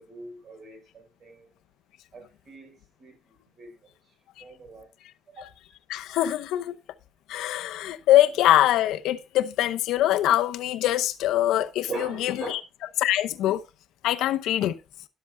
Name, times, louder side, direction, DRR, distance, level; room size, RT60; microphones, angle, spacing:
voice 1, 0.0-1.5 2.1-3.9 4.4-4.9 5.4-5.5 11.9-12.6, right 3 dB, 35° right, 4.5 m, -41 dB
voice 2, 5.9-6.8 7.3-12.6 13.0-13.6 14.0-14.7, left 13 dB, 85° left, 0.7 m, -23 dB
13.0 x 11.5 x 2.2 m
cardioid pair, 160°, 0 cm